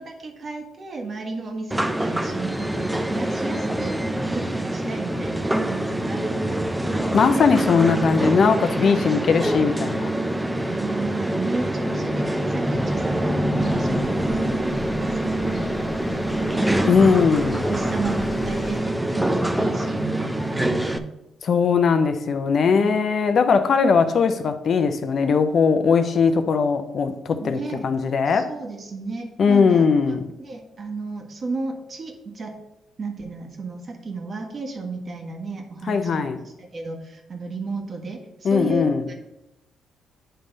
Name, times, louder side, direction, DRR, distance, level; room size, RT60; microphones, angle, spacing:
voice 1, 0.0-4.0 4.3-7.5 10.6-16.8 17.7-21.1 22.7-22.9 27.4-27.9 28.3-32.6 33.0-36.2 36.6-39.1, right 3 dB, 40° right, 1.4 m, -33 dB
sound 1, 1.7-21.0, right 1 dB, 5° right, 0.5 m, -25 dB
voice 2, 7.1-10.1 16.8-17.6 21.4-28.5 29.4-30.3 35.9-36.4 38.4-39.0, left 5 dB, 55° left, 0.6 m, -19 dB
sound 2, 13.6-18.8, left 2 dB, 25° left, 0.8 m, -36 dB
8.9 x 3.4 x 5.3 m
cardioid pair, 90°, 0 cm